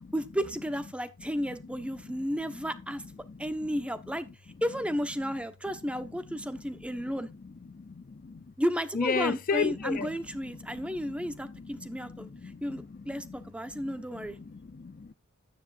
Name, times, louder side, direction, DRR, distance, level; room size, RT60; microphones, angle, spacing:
voice 1, 0.1-3.0 3.4-4.3 4.6-7.3 8.6-12.3 12.6-14.4, equal, 5° right, 1.1 m, -33 dB
voice 2, 7.7-8.5 8.9-10.2 10.4-10.5 10.8-13.3 13.7-15.1, left 5 dB, 40° left, 0.4 m, -35 dB
13.0 x 9.6 x 2.5 m
head